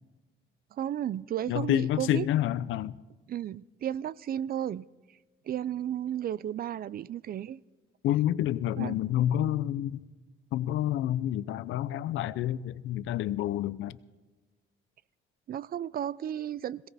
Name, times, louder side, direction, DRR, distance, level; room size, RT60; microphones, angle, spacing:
voice 1, 0.7-2.3 3.3-4.9 5.5-7.6 8.8-9.0 15.5-16.9, right 10 dB, 50° right, 0.4 m, -33 dB
voice 2, 1.5-3.0 8.0-10.0 10.5-14.0, left 12 dB, 80° left, 0.5 m, -28 dB
21.5 x 17.0 x 3.5 m
cardioid pair, 90°, 20 cm